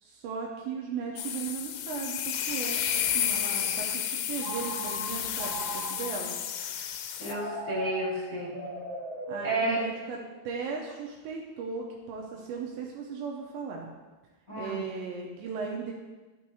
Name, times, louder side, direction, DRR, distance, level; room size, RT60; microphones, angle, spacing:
voice 1, 0.0-6.4 9.3-10.2 10.4-13.9 14.6-15.9, right 5 dB, 80° right, -1 dB, 2.7 m, -37 dB
sound 1, 1.2-7.3, left 9 dB, 85° left, 2.8 m, -31 dB
Telephone, 4.4-6.4 7.2-10.3, right 2 dB, 60° right, 2.8 m, -39 dB
voice 2, 7.2-8.6 9.4-9.9 14.5-14.8, right 1 dB, 20° left, -13 dB, 1.8 m, -31 dB
11.0 x 6.2 x 2.9 m, 1.2 s
omnidirectional pair, 5.4 m